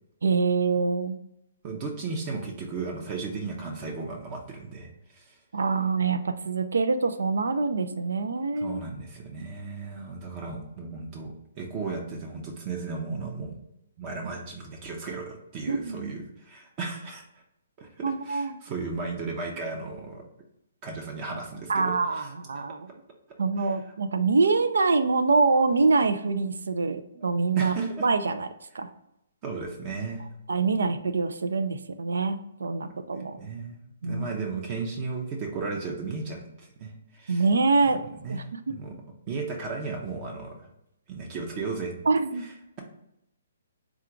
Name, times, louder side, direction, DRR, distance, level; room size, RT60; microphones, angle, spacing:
voice 1, 0.2-1.2 5.5-8.8 15.7-16.1 18.0-18.6 21.7-22.9 23.4-27.7 28.0-28.5 28.7-28.9 30.5-33.4 34.0-34.3 37.3-38.0 38.3-38.8 42.1-42.5, right 4 dB, 80° right, 9 dB, 0.4 m, -25 dB
voice 2, 1.6-5.4 8.6-13.6 14.0-17.2 17.8-20.2 20.8-22.6 23.6-23.7 27.1-27.2 27.6-28.1 29.4-30.3 33.4-37.4 37.8-38.0 38.2-38.9 39.3-40.7 41.1-41.9 42.4-42.8, right 4 dB, 30° right, 2 dB, 0.7 m, -35 dB
3.8 x 2.4 x 4.4 m, 0.83 s
hypercardioid pair, 145°, 0 cm